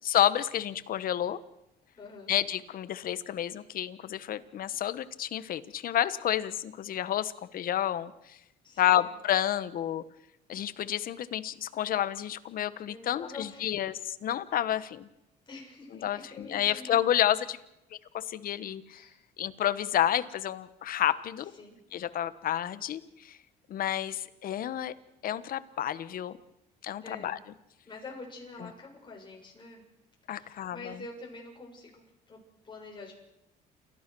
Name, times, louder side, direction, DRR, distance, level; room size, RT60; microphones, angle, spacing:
voice 1, 0.0-1.4 2.3-8.4 8.8-10.0 10.5-15.1 16.0-17.6 17.9-19.0 19.4-21.5 21.9-23.4 23.7-24.9 25.2-26.4 26.8-27.4 28.6-28.7 30.3-31.0, left 11 dB, 60° left, 14 dB, 1.2 m, -30 dB
voice 2, 2.0-2.3 8.6-9.1 12.8-13.8 15.5-17.0 18.9-19.2 21.5-21.8 27.0-27.4 27.8-29.9 30.3-33.1, left 3 dB, 30° left, 0 dB, 7.3 m, -46 dB
29.0 x 15.0 x 6.2 m, 0.86 s
cardioid pair, 110°, 17 cm